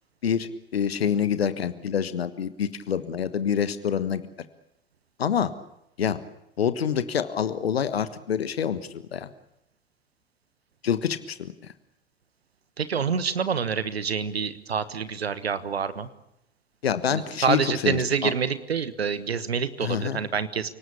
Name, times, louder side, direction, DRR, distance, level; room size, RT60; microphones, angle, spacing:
voice 1, 0.2-4.2 5.2-5.5 6.0-6.2 6.6-9.3 10.8-11.7 16.8-18.3 19.8-20.2, left 8 dB, 75° left, 13 dB, 1.4 m, -26 dB
voice 2, 12.8-16.1 17.1-20.7, right 6 dB, 80° right, 15 dB, 1.3 m, -27 dB
29.0 x 19.0 x 8.6 m, 0.83 s
figure-of-eight pair, 75°, 31 cm